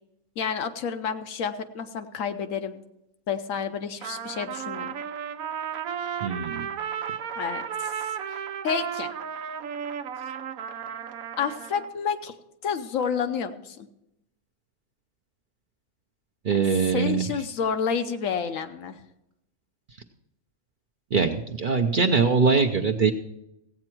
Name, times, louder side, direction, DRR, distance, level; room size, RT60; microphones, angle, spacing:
voice 1, 0.4-2.8 3.3-5.0 7.4-7.9 8.3-9.1 11.4-12.3 12.6-13.9 16.9-19.0, left 6 dB, 70° left, 8 dB, 1.1 m, -29 dB
Trumpet, 4.0-11.9, right 8 dB, 85° right, 1.1 m, -34 dB
voice 2, 6.2-6.7 16.4-17.4 21.1-23.1, right 5 dB, 50° right, 3 dB, 0.6 m, -22 dB
16.0 x 8.6 x 4.5 m, 0.86 s
omnidirectional pair, 1.4 m